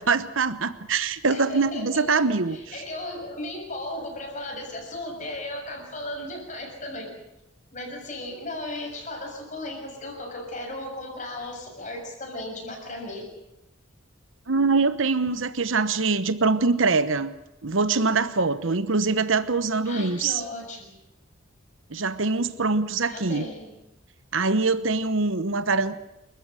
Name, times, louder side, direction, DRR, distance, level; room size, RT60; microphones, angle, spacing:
voice 1, 0.0-2.6 14.5-17.3 17.6-20.4 21.9-23.4 24.3-25.9, right 4 dB, 70° right, 13 dB, 1.1 m, -23 dB
voice 2, 1.3-7.2 7.7-13.3 19.9-21.0 23.1-23.7, left 1 dB, 35° left, 2 dB, 7.0 m, -36 dB
28.5 x 14.5 x 9.2 m, 0.91 s
head